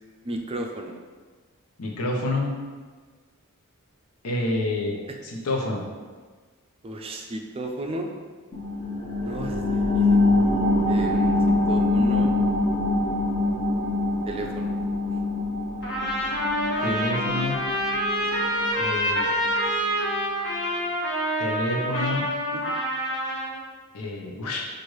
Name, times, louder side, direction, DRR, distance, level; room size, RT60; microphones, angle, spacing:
voice 1, 0.2-1.0 5.1-5.2 6.8-8.1 9.2-10.2 10.8-12.3 14.3-14.7 22.5-22.8, right 1 dB, 25° right, 3 dB, 0.4 m, -34 dB
voice 2, 1.8-2.5 4.2-5.8 16.8-17.6 18.7-19.3 21.4-22.3 23.9-24.6, left 2 dB, 85° left, 0 dB, 0.8 m, -28 dB
sound 1, 8.5-19.6 20.0-20.1, left 2 dB, 30° left, 0.6 m, -24 dB
Trumpet, 15.8-23.6, equal, 50° left, 1.2 m, -27 dB
6.3 x 2.5 x 3.1 m, 1.4 s
head